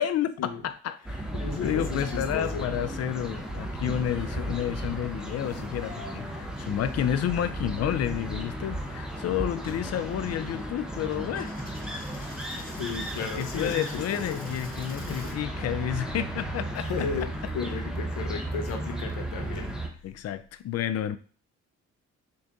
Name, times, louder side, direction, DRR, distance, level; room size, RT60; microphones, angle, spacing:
voice 1, 0.0-1.3 1.6-11.6 13.2-16.9 20.0-21.2, left 10 dB, 55° left, 0.4 m, -30 dB
sound 1, 1.0-19.9, right 1 dB, ahead, 0.7 m, -34 dB
voice 2, 1.3-2.7 12.6-14.4 15.1-15.3 16.8-20.0, left 5 dB, 85° left, 0.9 m, -35 dB
Coin (dropping), 9.5-15.4, left 2 dB, 30° left, 1.2 m, -49 dB
3.7 x 2.7 x 3.5 m
cardioid pair, 90°, 30 cm